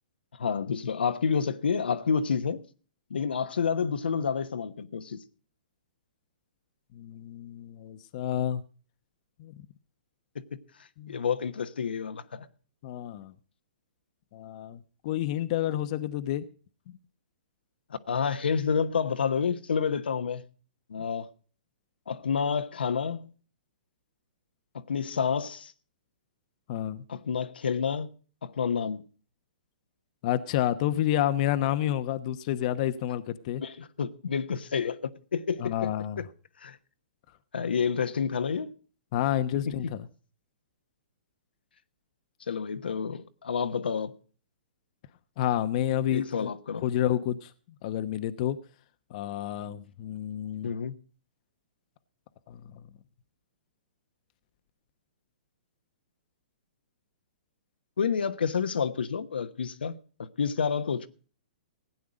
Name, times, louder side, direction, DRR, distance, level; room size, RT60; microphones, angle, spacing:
voice 1, 0.3-2.6 3.1-5.2 11.1-12.5 17.9-20.4 20.9-21.3 22.1-23.3 24.9-25.7 27.1-28.1 28.4-29.0 33.6-35.9 36.2-36.3 36.6-36.8 37.5-38.7 39.6-39.9 42.5-44.1 46.1-46.8 50.6-50.9 58.0-61.1, left 6 dB, 80° left, 1.1 m, -29 dB
voice 2, 6.9-8.6 9.4-9.5 11.0-11.2 12.8-13.3 14.3-16.4 26.7-27.0 30.2-33.6 35.6-36.2 39.1-40.0 45.4-46.5 46.8-47.5 47.8-48.6 49.1-50.7 52.5-52.6, left 11 dB, 45° left, 1.0 m, -29 dB
16.5 x 9.4 x 5.1 m
hypercardioid pair, 130°, 5 cm